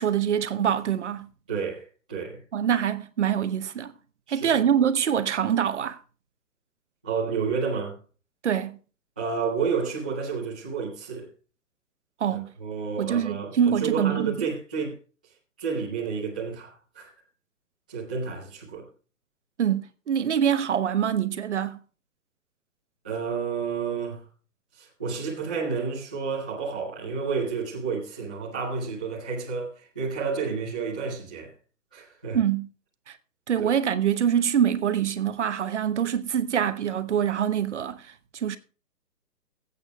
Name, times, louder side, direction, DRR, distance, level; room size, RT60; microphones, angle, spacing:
voice 1, 0.0-1.3 2.5-3.9 4.3-6.0 8.4-8.8 12.2-12.5 13.0-14.5 19.6-21.8 32.3-32.7 33.1-33.2 33.5-38.6, right 9 dB, 45° right, 0.8 m, -25 dB
voice 2, 1.5-2.4 4.3-4.5 7.0-8.0 9.2-11.3 12.3-15.0 15.6-16.7 16.9-17.1 17.9-18.9 23.0-24.2 24.8-31.5 31.9-32.4 33.6-33.7, right 5 dB, 5° right, 0.5 m, -30 dB
22.0 x 8.1 x 2.3 m
hypercardioid pair, 155°, 48 cm